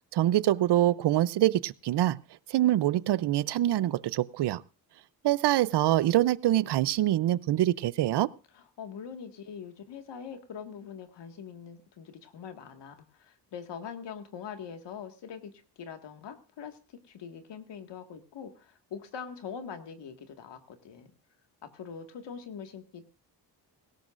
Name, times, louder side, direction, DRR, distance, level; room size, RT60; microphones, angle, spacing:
voice 1, 0.1-2.2 2.5-4.6 5.2-8.3, right 13 dB, 70° right, 19 dB, 0.7 m, -25 dB
voice 2, 8.5-21.1 21.6-23.1, left 7 dB, 75° left, 6 dB, 2.0 m, -43 dB
18.0 x 17.0 x 2.6 m, 0.33 s
cardioid pair, 75°, 43 cm